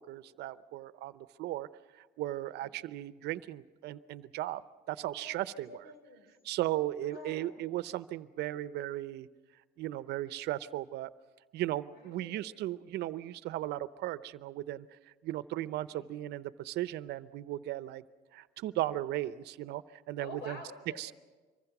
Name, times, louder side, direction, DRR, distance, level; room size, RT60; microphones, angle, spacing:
voice 1, 0.0-1.7 2.0-4.6 4.9-5.9 6.4-9.3 9.8-11.1 11.5-14.9 15.2-18.0 18.3-20.6 21.0-21.1, right 14 dB, 80° right, 15 dB, 0.7 m, -36 dB
voice 2, 5.1-6.3 7.0-7.5 11.9-12.4 15.9-16.1 20.2-21.1, left 2 dB, 80° left, 7 dB, 5.2 m, -49 dB
25.5 x 23.0 x 6.0 m, 1.3 s
cardioid pair, 110°, 17 cm